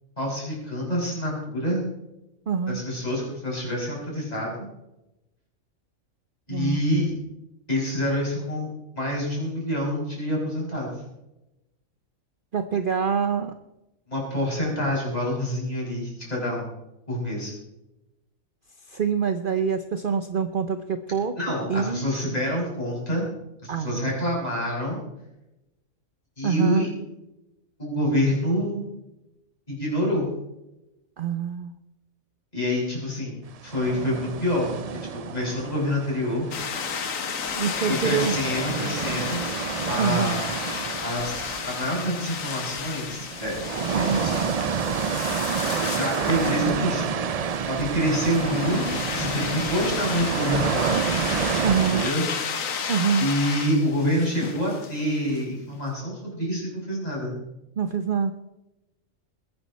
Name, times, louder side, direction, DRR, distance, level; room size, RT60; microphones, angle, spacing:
voice 1, 0.2-1.8 2.7-4.5 6.5-7.1 7.7-8.7 9.0-10.9 14.1-16.7 17.1-17.5 21.4-23.2 23.6-25.0 26.4-26.9 27.8-28.9 29.7-30.3 32.5-34.7 35.1-36.5 37.9-39.4 39.9-40.4 41.0-43.7 43.9-44.5 45.6-47.1 47.7-51.0 51.9-52.2 52.5-52.6 53.2-57.3, equal, 30° left, -3 dB, 6.3 m, -27 dB
voice 2, 2.5-2.8 6.5-6.8 12.5-13.5 18.9-22.1 23.7-24.2 26.4-26.9 31.2-31.7 37.5-38.3 40.0-40.4 43.9-44.3 51.6-52.1 52.9-53.3 57.8-58.3, right 6 dB, 45° right, 9 dB, 0.8 m, -25 dB
sound 1, 33.7-37.1 37.5-52.1, right 6 dB, 70° right, 0.3 m, -29 dB
sound 2, 36.5-55.5, left 6 dB, 75° left, 1.5 m, -33 dB
22.0 x 9.8 x 4.2 m, 0.93 s
omnidirectional pair, 1.4 m